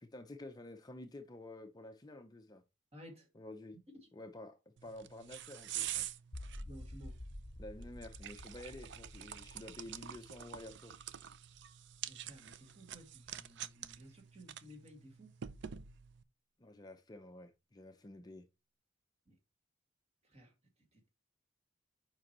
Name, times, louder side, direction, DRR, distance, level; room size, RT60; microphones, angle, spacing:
voice 1, 0.0-2.6 3.3-3.8 4.1-6.1 7.6-10.9 16.6-18.5, left 1 dB, 20° left, 0.5 m, -50 dB
voice 2, 2.9-3.3 6.7-7.1 12.1-15.3 19.3-19.4 20.3-20.5 20.9-21.1, equal, 30° right, 2.1 m, -55 dB
sound 1, 4.8-16.2, right 11 dB, 60° right, 0.4 m, -47 dB
sound 2, 6.3-12.4, left 1 dB, 35° left, 1.3 m, -51 dB
7.4 x 5.2 x 3.0 m
head